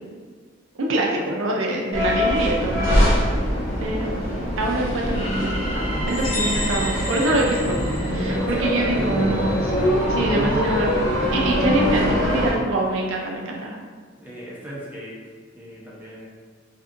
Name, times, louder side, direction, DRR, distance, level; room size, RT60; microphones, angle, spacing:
voice 1, 0.8-3.2 3.8-4.2 4.6-7.8 8.1-9.7 10.1-11.0 11.3-13.8, right 1 dB, 90° right, -1 dB, 0.4 m, -25 dB
sound 1, 1.9-12.5, equal, 85° left, 0.9 m, -23 dB
sound 2, 5.1-9.2, equal, 30° left, 0.7 m, -35 dB
sound 3, 6.1-8.7, left 1 dB, 65° left, 1.1 m, -32 dB
voice 2, 8.0-9.3 14.1-15.1 15.5-16.3, right 1 dB, 10° right, -7 dB, 0.6 m, -37 dB
2.6 x 2.4 x 2.4 m, 1.5 s
head